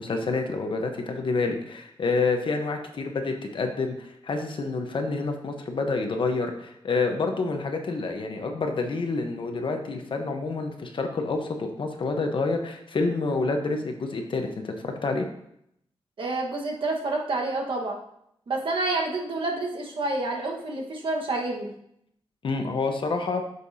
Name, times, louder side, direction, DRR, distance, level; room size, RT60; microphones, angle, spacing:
voice 1, 0.0-15.3 22.4-23.4, left 3 dB, 60° left, 4 dB, 1.0 m, -28 dB
voice 2, 16.2-18.0 18.5-21.7, right 2 dB, 60° right, 0 dB, 1.4 m, -28 dB
8.6 x 6.7 x 2.7 m, 0.75 s
wide cardioid pair, 115°, 10 cm